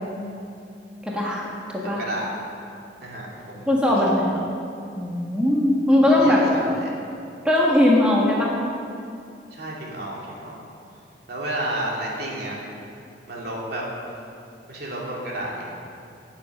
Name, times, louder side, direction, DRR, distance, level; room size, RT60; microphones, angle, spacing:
voice 1, 1.0-2.0 3.7-4.4 5.0-6.4 7.4-8.5, left 1 dB, 5° right, -4 dB, 1.5 m, -20 dB
voice 2, 1.8-2.3 3.0-3.7 3.9-4.2 6.1-7.0 9.5-10.6 11.3-12.6 13.3-13.8 14.7-15.7, right 1 dB, 60° right, -4 dB, 2.9 m, -31 dB
12.0 x 7.3 x 8.5 m, 2.5 s
head